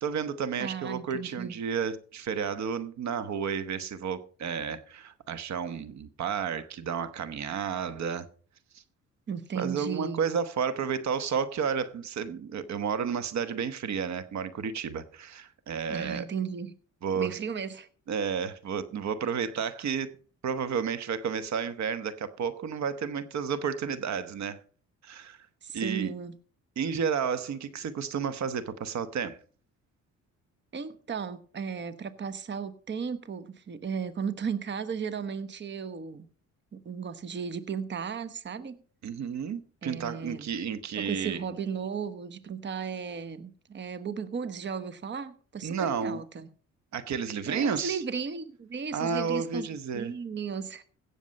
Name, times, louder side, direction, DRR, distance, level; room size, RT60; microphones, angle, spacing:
voice 1, 0.0-8.3 8.7-8.8 9.5-16.3 17.0-17.4 18.1-20.1 20.4-24.6 25.0-25.5 25.7-26.1 26.8-29.4 39.0-41.4 45.6-46.2 46.9-48.0 48.9-50.1, right 6 dB, 65° right, 1.1 m, -31 dB
voice 2, 0.6-1.5 9.3-10.2 15.9-16.8 17.1-17.9 25.6-26.3 30.7-36.3 36.7-38.8 39.8-40.5 41.0-46.5 47.5-50.8, right 6 dB, 35° right, 1.0 m, -35 dB
16.5 x 7.1 x 5.2 m
cardioid pair, 90°, 30 cm